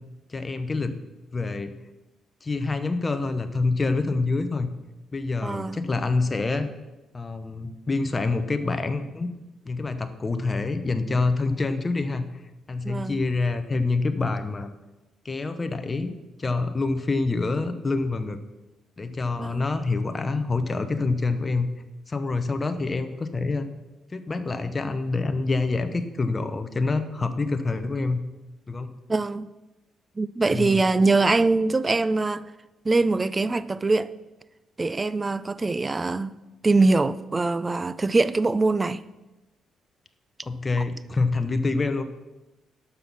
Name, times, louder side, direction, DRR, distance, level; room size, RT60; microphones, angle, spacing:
voice 1, 0.3-1.0 1.3-1.7 2.4-4.7 5.1-6.7 7.1-9.3 9.7-12.2 12.7-14.7 15.2-16.1 16.4-18.4 19.0-21.7 22.1-23.7 24.1-28.2 28.7-28.9 30.5-30.8 40.4-42.0, left 3 dB, 25° left, 0.8 m, -26 dB
voice 2, 5.4-5.8 12.8-13.2 19.4-19.6 29.1-29.5 30.2-32.4 32.9-34.1 34.8-36.3 36.6-39.0, right 3 dB, 25° right, 0.4 m, -23 dB
12.5 x 5.7 x 6.1 m
cardioid pair, 90°, 0 cm